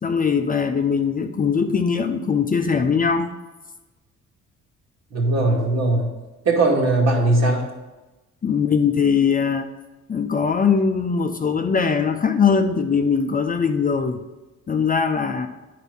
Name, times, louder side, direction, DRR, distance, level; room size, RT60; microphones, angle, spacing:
voice 1, 0.0-3.3 8.4-9.7 10.1-14.2 14.7-15.5, left 6 dB, 30° left, 6 dB, 0.6 m, -21 dB
voice 2, 5.1-6.1 6.4-7.6, right 2 dB, 60° right, -1 dB, 2.4 m, -19 dB
9.3 x 4.7 x 5.5 m, 1.1 s
cardioid pair, 90°, 30 cm